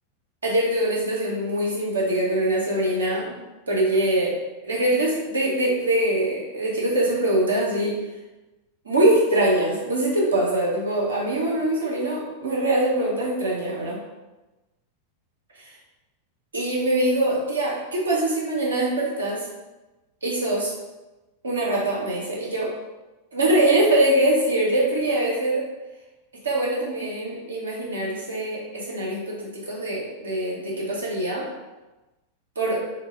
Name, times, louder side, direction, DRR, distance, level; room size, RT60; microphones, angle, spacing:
voice 1, 0.4-3.4 3.7-4.3 4.6-7.9 8.8-14.0 15.6-15.7 16.5-19.5 20.2-20.7 21.4-22.7 23.3-25.6 26.4-31.5 32.6-32.8, right 1 dB, 70° right, -4 dB, 0.7 m, -23 dB
2.2 x 2.0 x 3.2 m, 1.1 s
figure-of-eight pair, 90°, 0 cm